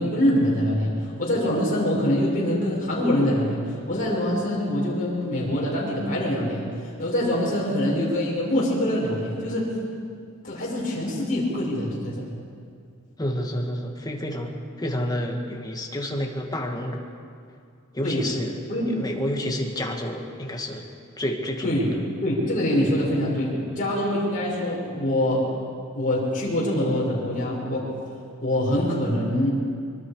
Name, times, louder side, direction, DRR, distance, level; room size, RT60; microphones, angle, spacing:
voice 1, 0.0-9.7 10.4-12.3 18.0-18.2 18.7-18.9 21.6-21.9 22.2-25.5 25.9-27.9 28.4-29.5, left 1 dB, 40° left, -5 dB, 5.4 m, -24 dB
voice 2, 13.2-17.1 17.9-18.6 18.9-20.8 21.2-22.0, equal, 20° left, 2 dB, 2.0 m, -29 dB
24.0 x 23.5 x 5.0 m, 2.3 s
head